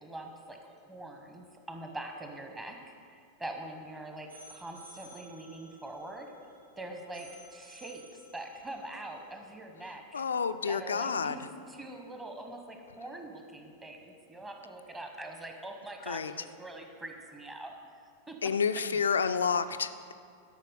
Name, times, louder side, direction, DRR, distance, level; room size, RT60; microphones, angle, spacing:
voice 1, 0.0-6.3 6.8-8.0 8.3-10.2 10.7-17.7 18.3-19.0, right 1 dB, 15° right, 3 dB, 1.1 m, -43 dB
sound 1, 4.3-9.5, right 1 dB, 85° right, 1.6 m, -55 dB
voice 2, 10.1-11.4 16.1-16.3 18.4-20.1, left 6 dB, 70° left, 11 dB, 0.4 m, -29 dB
12.0 x 5.7 x 5.4 m, 2.3 s
figure-of-eight pair, 90°, 0 cm